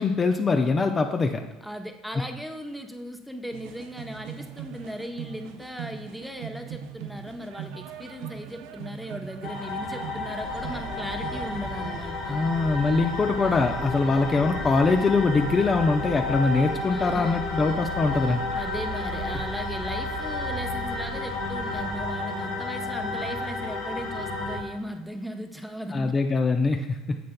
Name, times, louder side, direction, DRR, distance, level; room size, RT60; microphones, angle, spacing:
voice 1, 0.0-1.4 12.3-18.4 25.9-27.2, left 4 dB, 25° left, 5 dB, 0.5 m, -23 dB
voice 2, 1.6-12.4 16.9-17.4 18.5-26.3, equal, ahead, 5 dB, 0.8 m, -37 dB
sound 1, 3.5-12.0, right 8 dB, 65° right, 0.6 m, -41 dB
sound 2, 9.4-24.6, left 2 dB, 70° left, 2.2 m, -32 dB
sound 3, 10.3-22.1, right 3 dB, 35° right, 1.0 m, -42 dB
9.3 x 7.5 x 2.2 m, 1.1 s
figure-of-eight pair, 65°, 0 cm